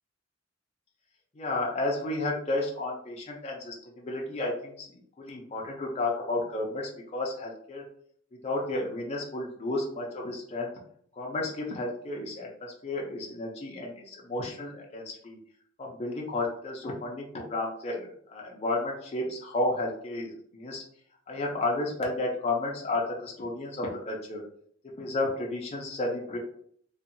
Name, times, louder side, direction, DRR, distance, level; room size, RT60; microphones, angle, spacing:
voice 1, 1.3-7.9 8.4-10.7 11.2-15.4 15.8-20.8 21.3-24.4 25.0-26.4, left 2 dB, 35° left, -2 dB, 0.5 m, -32 dB
2.7 x 2.3 x 2.5 m, 0.63 s
head